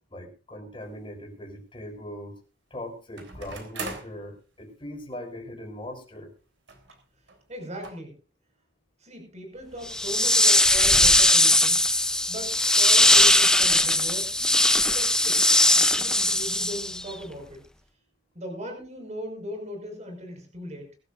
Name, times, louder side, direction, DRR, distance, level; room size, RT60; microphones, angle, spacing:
voice 1, 0.1-2.3 2.7-6.3, left 1 dB, 30° left, 1 dB, 6.3 m, -40 dB
sound 1, 0.8-0.9 3.2-4.2 5.1-5.2 5.5-5.6 6.7-7.0 7.3-7.4 7.8-7.9, right 3 dB, 80° right, 3.6 m, -39 dB
voice 2, 7.5-8.1 9.0-11.8 12.3-14.3 14.8-17.6 18.3-20.9, equal, 40° right, 4 dB, 5.6 m, -39 dB
sound 2, 9.9-17.1, left 1 dB, 5° left, 0.8 m, -20 dB
23.5 x 12.5 x 2.6 m, 0.33 s
head